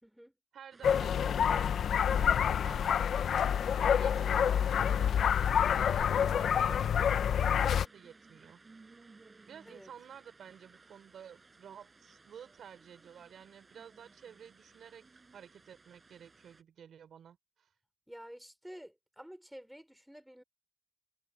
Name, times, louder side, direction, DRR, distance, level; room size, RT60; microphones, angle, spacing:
voice 1, 0.0-0.3 9.6-9.9 18.1-20.4, equal, 5° right, 4.7 m, -50 dB
voice 2, 0.5-3.1 3.8-8.6 9.5-15.1 15.3-17.7, right 8 dB, 70° right, 5.1 m, -52 dB
sound 1, 0.7-16.6, right 3 dB, 25° right, 5.1 m, -60 dB
sound 2, 0.8-7.8, left 8 dB, 70° left, 0.6 m, -27 dB
wide cardioid pair, 130°, 0 cm